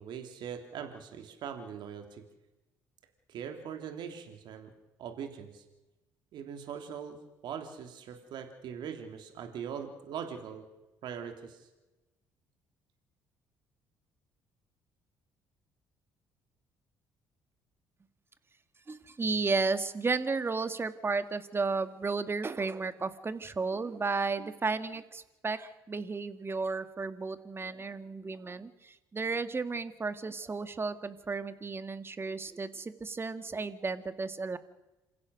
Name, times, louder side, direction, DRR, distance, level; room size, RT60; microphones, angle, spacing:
voice 1, 0.0-2.2 3.3-4.7 5.0-5.6 6.3-10.6 11.0-11.7, right 7 dB, 65° right, 5 dB, 3.1 m, -41 dB
voice 2, 18.9-34.6, right 4 dB, 30° right, 10 dB, 2.0 m, -33 dB
28.0 x 16.0 x 6.5 m, 1.0 s
supercardioid pair, 65°, 8 cm